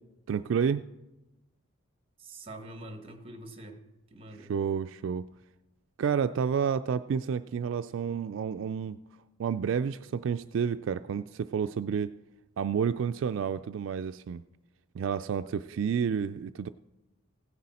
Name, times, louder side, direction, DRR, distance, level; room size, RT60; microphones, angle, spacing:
voice 1, 0.3-0.8 4.5-5.3 6.0-9.0 9.4-12.1 12.6-14.4 14.9-16.7, right 7 dB, 65° right, 0.3 m, -30 dB
voice 2, 2.2-4.6 15.4-15.9, right 1 dB, 25° right, 1.3 m, -46 dB
16.5 x 10.5 x 4.2 m
head